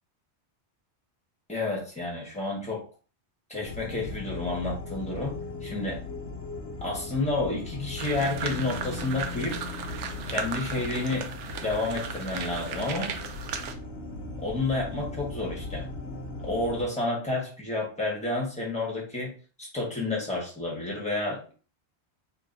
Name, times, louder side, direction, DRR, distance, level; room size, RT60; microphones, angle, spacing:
voice 1, 1.5-2.8 3.5-6.0 6.8-9.6 10.3-11.3 11.6-13.1 14.4-15.9 16.4-19.3 19.6-21.5, left 2 dB, 5° left, -3 dB, 1.3 m, -30 dB
sound 1, 3.6-16.8, left 3 dB, 70° left, 1.1 m, -38 dB
sound 2, 8.0-13.7, right 6 dB, 90° right, 0.9 m, -36 dB
2.9 x 2.9 x 3.9 m, 0.39 s
omnidirectional pair, 1.2 m